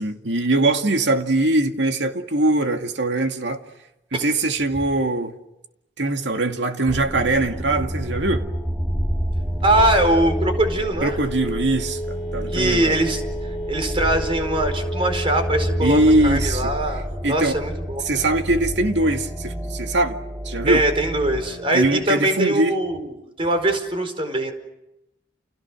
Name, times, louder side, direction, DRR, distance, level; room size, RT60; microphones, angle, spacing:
voice 1, 0.0-3.6 4.1-5.4 6.0-8.5 11.0-12.9 15.8-16.7 17.2-17.6 18.0-20.2 20.4-20.8 21.7-22.8, right 2 dB, 80° right, 2.4 m, -21 dB
sound 1, 6.9-22.4, equal, 5° right, 1.9 m, -29 dB
Telephone, 9.2-16.6, right 1 dB, 65° left, 2.0 m, -33 dB
voice 2, 9.6-11.2 12.5-13.2 13.7-18.1 20.6-24.5, right 1 dB, 30° right, 4.6 m, -22 dB
30.0 x 29.5 x 6.3 m
head